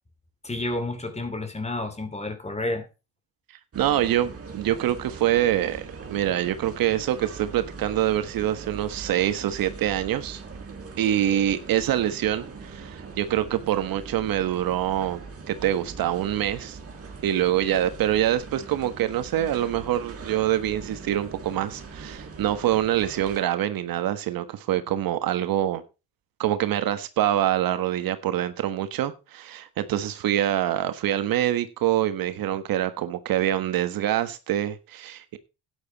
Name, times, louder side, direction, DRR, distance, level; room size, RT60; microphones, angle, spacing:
voice 1, 0.4-2.9, left 2 dB, 20° left, 2.7 m, -30 dB
sound 1, 3.7-23.4, right 4 dB, 40° right, 3.9 m, -41 dB
voice 2, 3.7-10.4 11.0-15.2 15.5-16.8 17.2-25.8 26.4-35.4, right 12 dB, 70° right, 1.4 m, -25 dB
11.5 x 9.6 x 4.1 m
cardioid pair, 95°, 37 cm